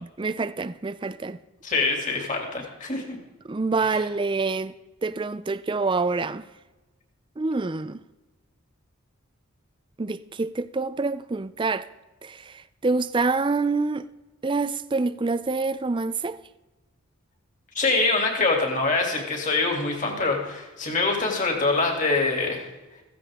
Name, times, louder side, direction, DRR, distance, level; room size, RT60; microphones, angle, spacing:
voice 1, 0.0-1.4 3.4-4.7 5.0-6.4 7.4-8.0 10.0-11.9 12.2-14.1 14.4-16.4, right 3 dB, 20° right, 0.4 m, -26 dB
voice 2, 1.6-3.2 3.9-4.0 17.7-22.7, left 3 dB, 35° left, 2.7 m, -24 dB
15.5 x 15.5 x 3.7 m
head